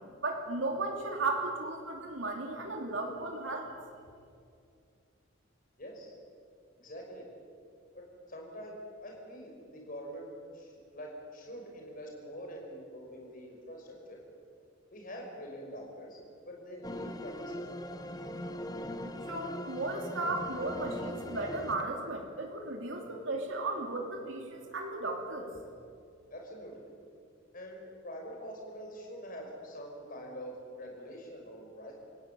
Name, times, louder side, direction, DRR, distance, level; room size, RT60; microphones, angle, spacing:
voice 1, 0.2-3.7 19.3-25.5, right 2 dB, 75° right, 1 dB, 3.1 m, -35 dB
voice 2, 5.8-6.1 6.8-7.2 7.9-8.0 8.3-10.3 10.5-14.2 14.9-16.2 16.5-17.8 26.3-27.0 27.5-31.9, equal, 45° left, 0 dB, 5.7 m, -45 dB
sound 1, 16.8-21.9, left 1 dB, 20° left, 1.3 m, -40 dB
28.0 x 16.0 x 8.6 m, 2.3 s
head